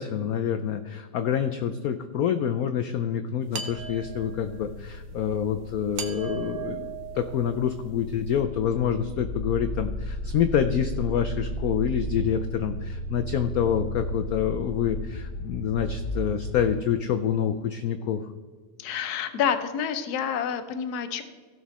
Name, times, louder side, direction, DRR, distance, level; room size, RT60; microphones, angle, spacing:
voice 1, 0.0-18.2, left 8 dB, 80° left, 9 dB, 0.8 m, -27 dB
sound 1, 3.5-4.6 6.0-7.8, right 8 dB, 55° right, 1.1 m, -37 dB
sound 2, 3.7-16.7, equal, 30° left, 1.9 m, -35 dB
voice 2, 18.8-21.2, left 8 dB, 60° left, 9 dB, 1.2 m, -28 dB
15.5 x 6.1 x 4.2 m, 1.5 s
omnidirectional pair, 2.1 m